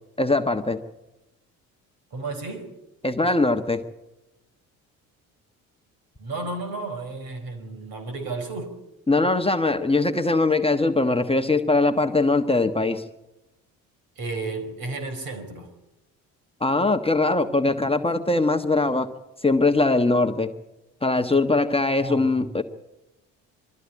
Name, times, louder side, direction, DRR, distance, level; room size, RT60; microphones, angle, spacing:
voice 1, 0.2-0.8 3.0-3.8 9.1-13.0 16.6-19.1 19.4-20.5 21.0-22.6, left 2 dB, 15° left, 1.3 m, -21 dB
voice 2, 2.1-2.7 6.2-8.8 14.2-15.7 22.0-22.5, right 3 dB, 60° right, 4.5 m, -33 dB
23.0 x 13.5 x 8.6 m
hypercardioid pair, 60°, 40 cm